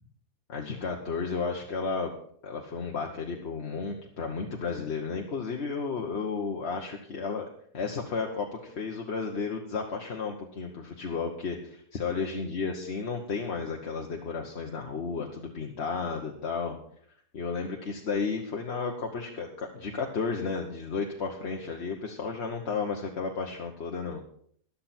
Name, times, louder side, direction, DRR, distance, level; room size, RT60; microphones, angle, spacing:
voice 1, 0.5-2.1 2.4-7.5 7.7-16.8 17.3-24.2, left 5 dB, 45° left, 1 dB, 1.3 m, -33 dB
14.0 x 11.5 x 4.4 m, 0.62 s
omnidirectional pair, 1.7 m